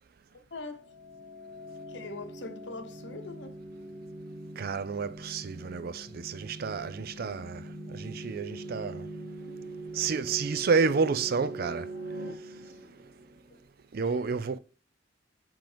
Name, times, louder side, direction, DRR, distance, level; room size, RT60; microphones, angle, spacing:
voice 1, 0.3-0.9 1.9-3.6 12.6-12.8 13.5-13.6 14.0-14.3, left 3 dB, 70° left, 1.0 m, -43 dB
sound 1, 0.9-13.6, right 1 dB, 75° right, 1.4 m, -42 dB
voice 2, 4.6-9.1 9.5-9.6 9.9-11.9 13.9-14.6, right 5 dB, 55° right, 0.4 m, -30 dB
7.6 x 3.7 x 3.4 m
head